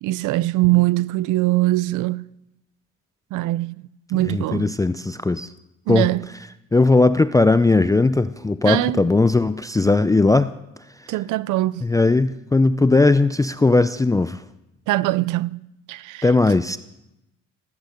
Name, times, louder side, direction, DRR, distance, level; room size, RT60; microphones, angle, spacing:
voice 1, 0.0-2.2 3.3-3.7 4.1-4.7 5.9-6.2 8.6-9.0 11.1-11.8 14.9-15.6 15.9-16.3, right 18 dB, 90° right, 0.5 m, -21 dB
voice 2, 4.1-5.5 5.9-6.1 6.7-10.5 11.8-14.4 16.2-16.8, left 3 dB, 10° left, 0.4 m, -18 dB
15.0 x 10.5 x 6.6 m
cardioid pair, 90°, 30 cm